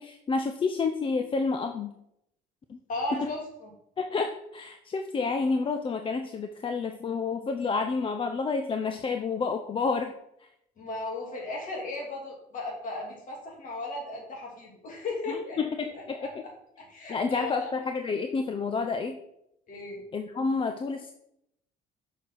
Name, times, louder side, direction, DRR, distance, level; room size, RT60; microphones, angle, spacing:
voice 1, 0.0-1.9 2.7-2.8 3.1-3.3 4.0-10.1 15.3-16.3 17.1-19.2 20.1-21.1, left 4 dB, 30° left, 6 dB, 0.5 m, -29 dB
voice 2, 2.9-3.7 10.8-15.6 15.9-16.5 16.8-17.7 19.7-20.0, left 2 dB, 50° left, -1 dB, 2.7 m, -36 dB
6.5 x 5.8 x 4.1 m, 0.79 s
cardioid pair, 110°, 17 cm